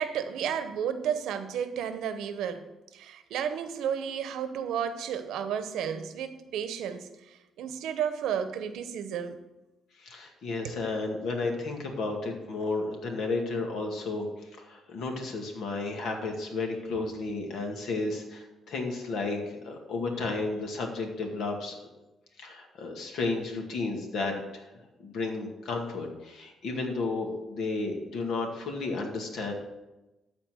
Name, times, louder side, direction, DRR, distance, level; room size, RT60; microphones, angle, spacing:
voice 1, 0.0-2.7 2.9-9.4 10.6-10.8, right 8 dB, 85° right, 9 dB, 0.8 m, -32 dB
voice 2, 10.0-21.8 22.4-24.7 25.0-29.5, left 3 dB, 75° left, 2 dB, 2.0 m, -33 dB
13.0 x 4.3 x 6.4 m, 1.0 s
cardioid pair, 90°, 0 cm